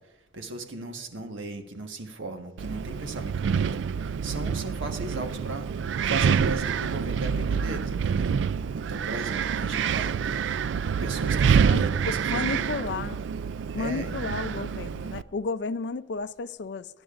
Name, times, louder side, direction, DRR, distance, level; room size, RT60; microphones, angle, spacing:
voice 1, 0.3-3.8 4.2-5.7 6.1-8.3 8.7-10.5 11.0-13.1 13.7-14.1, right 2 dB, 85° right, 1.3 m, -37 dB
Wind, 2.6-15.2, right 6 dB, 65° right, 0.3 m, -27 dB
voice 2, 12.3-13.2 13.7-16.9, left 4 dB, 60° left, 0.4 m, -32 dB
22.0 x 10.5 x 2.5 m
head